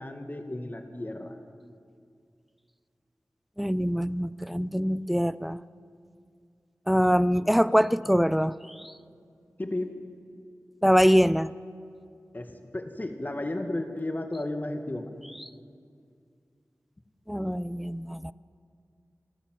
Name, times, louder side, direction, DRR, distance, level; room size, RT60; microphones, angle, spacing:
voice 1, 0.0-1.4 9.6-10.0 12.3-15.1, left 1 dB, 35° left, 1.9 m, -33 dB
voice 2, 3.6-5.6 6.9-8.5 10.8-11.5 17.3-18.3, equal, ahead, 0.5 m, -23 dB
29.5 x 13.0 x 7.6 m
wide cardioid pair, 65°, 6 cm